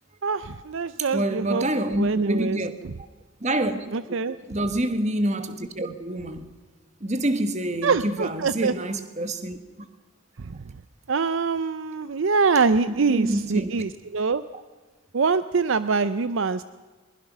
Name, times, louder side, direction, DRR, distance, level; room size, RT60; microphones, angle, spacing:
voice 1, 0.2-1.6 2.0-2.6 3.9-4.4 7.8-8.7 10.4-10.6 11.1-14.4 15.1-16.6, right 4 dB, 65° right, 0.5 m, -24 dB
voice 2, 1.0-2.7 3.4-3.9 4.5-6.5 7.0-9.9 12.9-13.8, right 1 dB, 30° right, 1.4 m, -27 dB
22.0 x 21.0 x 6.2 m
head